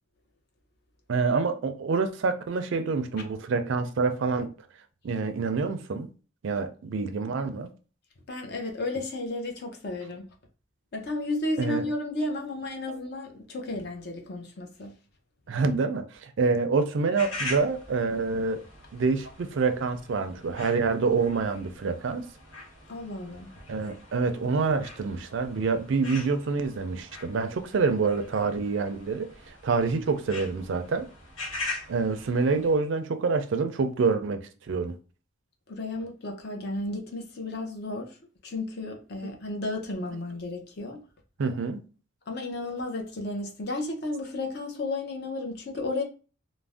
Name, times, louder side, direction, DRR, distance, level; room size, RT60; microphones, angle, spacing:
voice 1, 1.1-4.5 5.0-6.1 6.4-7.7 11.6-11.9 15.5-18.6 18.9-22.2 23.7-29.3 29.6-31.1 31.9-34.4 34.7-35.0 41.4-41.8, right 4 dB, 60° right, 0.4 m, -27 dB
voice 2, 8.3-10.3 10.9-14.9 22.9-23.5 35.7-38.2 38.4-41.0 42.3-46.0, left 2 dB, 50° left, 0.6 m, -33 dB
sound 1, 17.1-32.7, left 2 dB, 80° left, 1.1 m, -42 dB
2.5 x 2.0 x 3.4 m
head